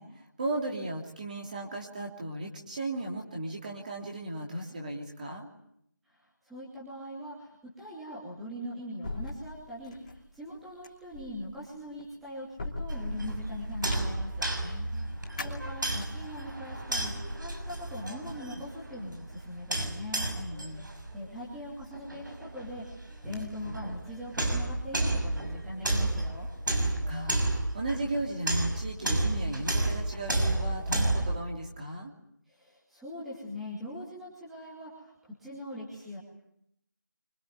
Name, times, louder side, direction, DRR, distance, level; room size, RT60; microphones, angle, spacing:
voice 1, 0.0-5.5 14.6-15.1 20.3-20.8 26.8-32.1, right 2 dB, 25° right, 0 dB, 3.0 m, -36 dB
voice 2, 6.1-14.5 14.7-15.0 15.4-20.3 21.1-22.9 23.2-26.5 32.5-36.2, left 1 dB, ahead, -8 dB, 2.6 m, -42 dB
sound 1, 9.0-16.4, left 2 dB, 20° left, 3.0 m, -42 dB
sound 2, 12.9-31.4, right 2 dB, 70° right, 6.5 m, -32 dB
25.5 x 22.5 x 9.5 m, 0.75 s
figure-of-eight pair, 175°, 11 cm